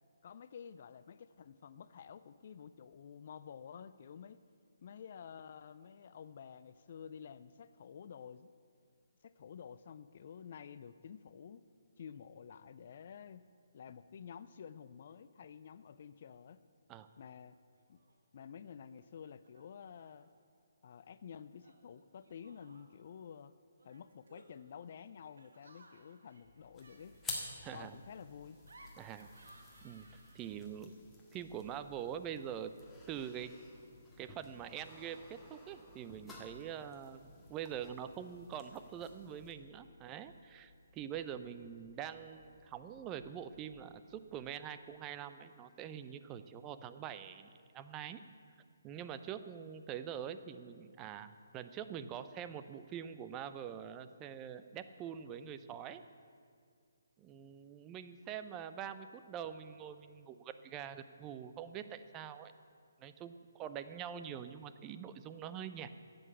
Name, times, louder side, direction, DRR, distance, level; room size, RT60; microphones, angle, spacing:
voice 1, 0.2-4.4 4.8-8.5 9.2-11.6 12.0-13.4 13.7-16.6 17.2-17.6 17.9-18.0 18.3-20.3 20.8-23.5 23.8-27.2 27.7-28.6, left 7 dB, 50° left, 14 dB, 0.4 m, -51 dB
Laughter, 17.7-18.2 18.4-19.0 19.4-20.3 21.6-23.1 23.8-30.7, right 2 dB, 70° right, 1.6 m, -63 dB
sound 1, 26.4-44.7, left 2 dB, 25° left, 2.8 m, -65 dB
sound 2, 26.7-39.5, left 2 dB, 5° left, 1.7 m, -52 dB
voice 2, 27.6-28.0 29.0-29.3 29.8-30.1 30.3-30.9 31.3-32.7 33.1-33.5 34.2-48.2 48.8-56.0 57.2-62.5 63.0-65.9, right 9 dB, 20° right, 11 dB, 0.5 m, -44 dB
11.0 x 7.9 x 8.4 m, 2.2 s
figure-of-eight pair, 145°, 0 cm